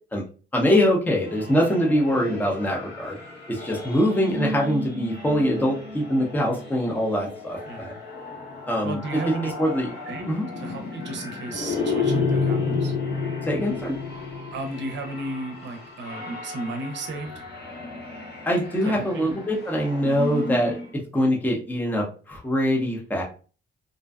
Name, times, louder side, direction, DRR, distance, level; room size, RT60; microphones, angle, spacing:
voice 1, 0.5-3.2 3.5-7.9 8.7-9.9 10.3-10.5 13.4-14.0 18.4-20.8 21.1-23.2, equal, 10° left, -1 dB, 0.6 m, -23 dB
sound 1, 1.1-20.9, left 3 dB, 55° left, 0.8 m, -32 dB
voice 2, 7.7-8.0 8.8-9.5 10.1-12.9 14.5-17.3 18.9-19.3, right 2 dB, 65° right, 4 dB, 0.6 m, -34 dB
2.5 x 2.2 x 2.3 m, 0.36 s
cardioid pair, 90°, 20 cm